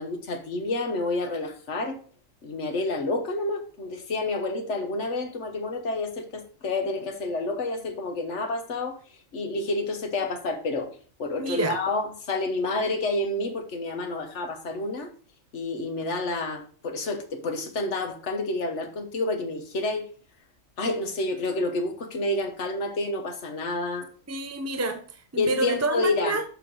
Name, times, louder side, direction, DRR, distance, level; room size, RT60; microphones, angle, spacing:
voice 1, 0.0-2.0 2.4-9.0 9.3-10.9 11.2-15.1 15.5-20.1 20.8-24.1 25.4-26.4, left 2 dB, 60° left, 1.4 m, -29 dB
voice 2, 11.4-11.8 24.3-26.4, right 3 dB, 20° right, 0.4 m, -28 dB
6.9 x 5.8 x 4.7 m
omnidirectional pair, 1.4 m